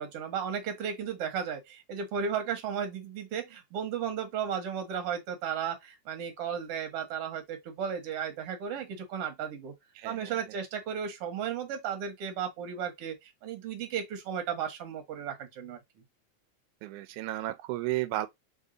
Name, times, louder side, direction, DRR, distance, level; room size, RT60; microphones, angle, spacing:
voice 1, 0.0-9.7 10.0-15.8, right 7 dB, 55° right, 2.0 m, -34 dB
voice 2, 10.0-10.3 16.8-18.3, right 16 dB, 90° right, 2.0 m, -33 dB
4.6 x 2.7 x 3.8 m
omnidirectional pair, 3.5 m